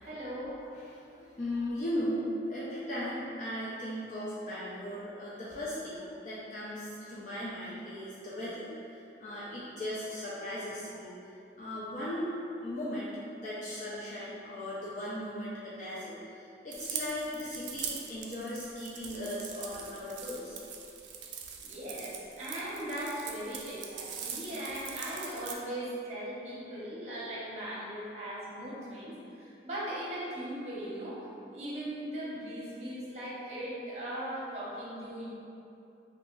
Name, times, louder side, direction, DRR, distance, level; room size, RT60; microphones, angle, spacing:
voice 1, 0.0-0.6 21.6-35.3, right 1 dB, 40° right, -7 dB, 0.8 m, -39 dB
voice 2, 0.7-11.2 11.6-20.6, left 1 dB, 45° left, -9 dB, 0.4 m, -37 dB
sound 1, 16.7-25.5, right 7 dB, 85° right, 0.4 m, -42 dB
2.9 x 2.4 x 3.6 m, 2.6 s
head